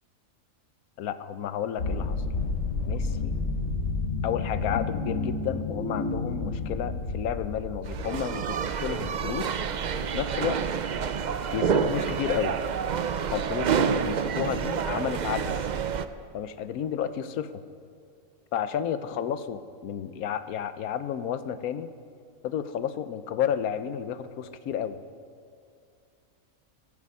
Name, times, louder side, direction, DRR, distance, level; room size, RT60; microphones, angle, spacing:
voice 1, 1.0-2.2 2.9-3.4 4.2-9.6 10.0-10.6 11.5-12.6 13.3-15.6 16.3-17.6 18.5-21.9 22.4-25.0, left 9 dB, 85° left, 12 dB, 1.2 m, -31 dB
sound 1, 1.8-8.6, left 3 dB, 65° left, 1.6 m, -30 dB
sound 2, 7.9-16.1, right 7 dB, 75° right, 0.4 m, -28 dB
23.5 x 10.5 x 5.4 m, 2.3 s
omnidirectional pair, 1.5 m